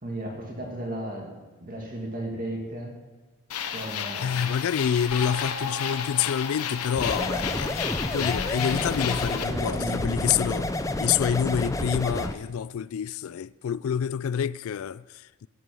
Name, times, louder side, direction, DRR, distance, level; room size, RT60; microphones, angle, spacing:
voice 1, 0.0-3.0 3.7-4.5 7.4-7.8 9.3-10.3, right 1 dB, 40° right, 2.4 m, -35 dB
sound 1, 3.5-9.4, left 7 dB, 85° left, 0.9 m, -32 dB
voice 2, 4.2-7.7 8.1-10.7 11.0-15.5, left 8 dB, 70° left, 0.3 m, -27 dB
sound 2, 7.0-12.3, left 1 dB, 15° left, 0.5 m, -29 dB
16.0 x 9.2 x 5.5 m
head